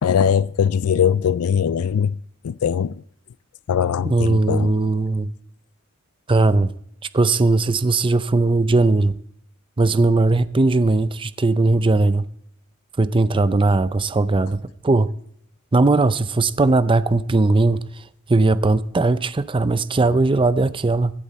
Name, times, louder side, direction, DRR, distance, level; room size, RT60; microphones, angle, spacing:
voice 1, 0.0-2.1 2.4-2.9 3.7-4.7, left 8 dB, 90° left, 0.4 m, -20 dB
voice 2, 4.0-5.3 6.3-6.7 7.1-9.1 9.8-12.2 13.0-15.1 15.7-17.8 18.3-21.1, right 3 dB, 25° right, 0.5 m, -18 dB
16.5 x 12.0 x 4.2 m
head